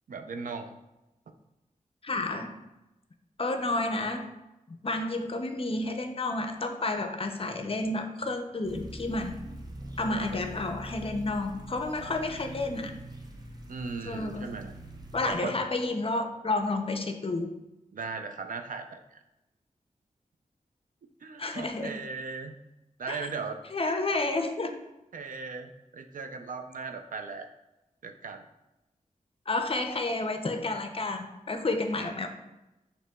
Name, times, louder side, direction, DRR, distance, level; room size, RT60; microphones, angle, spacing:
voice 1, 0.1-0.7 10.0-10.4 13.7-14.7 15.2-15.7 17.9-19.2 21.2-22.5 23.0-23.6 25.1-27.5 28.0-28.4 32.0-32.1, right 4 dB, 75° right, 6 dB, 0.4 m, -38 dB
voice 2, 2.0-2.6 3.4-4.4 4.7-9.5 10.0-13.0 14.0-14.6 15.1-17.5 21.4-22.0 23.1-23.2 23.7-24.7 29.5-32.3, left 2 dB, 40° left, 6 dB, 0.5 m, -31 dB
sound 1, 8.6-15.3, right 1 dB, 30° right, 0.6 m, -43 dB
6.4 x 3.0 x 2.2 m, 0.97 s
wide cardioid pair, 60°, 14 cm